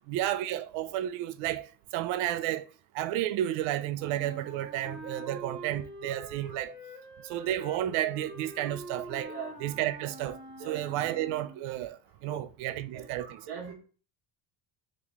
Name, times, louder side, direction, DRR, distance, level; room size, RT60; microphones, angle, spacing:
voice 1, 0.1-2.7 2.9-6.7 7.2-9.3 9.6-10.4 10.6-13.4, right 13 dB, 85° right, 0.6 m, -32 dB
Wind instrument woodwind instrument, 3.9-11.6, equal, ahead, 1.0 m, -45 dB
voice 2, 9.3-9.8 10.6-11.1 12.2-12.4 12.7-13.7, right 7 dB, 55° right, 1.2 m, -43 dB
4.0 x 3.2 x 3.5 m
cardioid pair, 170°, 48 cm